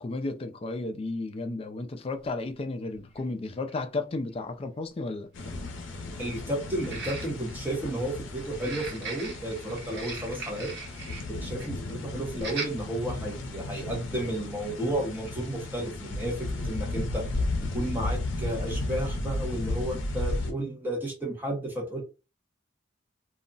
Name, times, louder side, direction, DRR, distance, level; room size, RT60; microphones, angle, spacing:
voice 1, 0.0-5.3, left 2 dB, 30° left, 0.3 m, -33 dB
sound 1, 2.1-2.2 3.2-3.3 3.7-3.8 6.8-7.6 8.5-11.3 11.6-11.8 12.4-12.7 13.3-13.4, right 4 dB, 55° right, 1.0 m, -39 dB
sound 2, 5.3-20.5, left 2 dB, 75° left, 0.5 m, -34 dB
voice 2, 6.2-10.7 11.3-17.2 17.6-22.0, right 1 dB, 10° right, 0.6 m, -32 dB
2.3 x 2.0 x 3.8 m
head